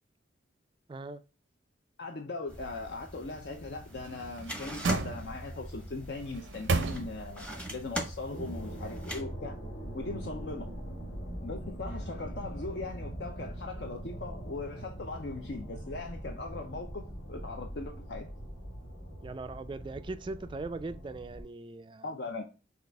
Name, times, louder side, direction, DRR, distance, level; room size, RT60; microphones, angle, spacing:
voice 1, 0.9-1.2 19.2-22.3, right 3 dB, 25° right, 0.3 m, -40 dB
voice 2, 2.0-9.6 9.9-10.7 11.4-18.3 22.0-22.4, left 3 dB, 60° left, 0.6 m, -39 dB
sound 1, 2.5-9.2, equal, 5° left, 0.7 m, -42 dB
sound 2, 4.0-5.7 6.2-7.5 7.9-8.0, right 3 dB, 80° right, 0.6 m, -33 dB
sound 3, 5.1-21.4, right 1 dB, 75° left, 2.4 m, -43 dB
6.4 x 2.4 x 3.4 m
head